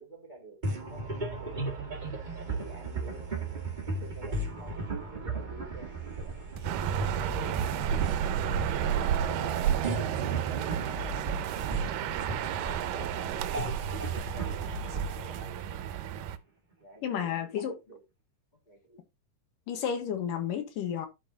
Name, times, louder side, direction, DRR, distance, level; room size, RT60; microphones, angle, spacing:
voice 1, 0.0-1.9 2.5-3.6 3.8-7.8 8.2-9.7 10.2-12.0 12.4-16.1 16.8-18.0 18.6-19.0, right 2 dB, 20° left, 1.3 m, -49 dB
sound 1, 0.6-16.3, right 3 dB, 35° right, 0.7 m, -36 dB
sound 2, 6.6-15.4, right 8 dB, 70° right, 1.7 m, -48 dB
sound 3, 6.6-16.4, right 9 dB, 85° right, 2.4 m, -32 dB
voice 2, 17.0-17.8 19.7-21.1, left 8 dB, 75° left, 2.9 m, -32 dB
12.5 x 5.1 x 2.8 m
omnidirectional pair, 3.9 m